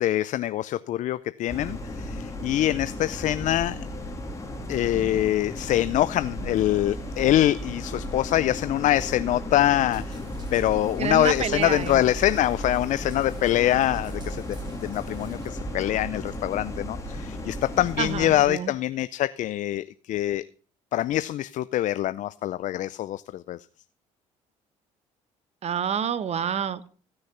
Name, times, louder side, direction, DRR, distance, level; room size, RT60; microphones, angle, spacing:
voice 1, 0.0-3.8 4.7-10.2 10.5-20.4 20.9-23.7, left 13 dB, 60° left, 0.5 m, -24 dB
sound 1, 1.5-18.4, left 1 dB, 20° left, 2.9 m, -35 dB
sound 2, 9.9-15.5, right 2 dB, 30° right, 5.0 m, -49 dB
voice 2, 11.0-12.0 18.0-18.7 25.6-26.9, right 8 dB, 50° right, 1.1 m, -28 dB
16.0 x 6.4 x 5.7 m
supercardioid pair, 75°, 14 cm